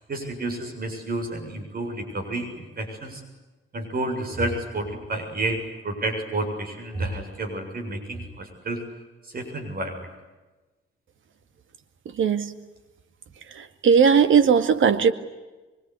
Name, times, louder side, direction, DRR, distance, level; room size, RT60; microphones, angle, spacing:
voice 1, 0.1-3.2 3.7-5.6 5.8-8.8 9.3-10.1, right 2 dB, 45° right, 5 dB, 7.3 m, -30 dB
voice 2, 12.1-12.5 13.5-15.1, right 6 dB, 70° right, 10 dB, 2.2 m, -18 dB
25.0 x 24.0 x 9.8 m, 1.2 s
cardioid pair, 115°, 21 cm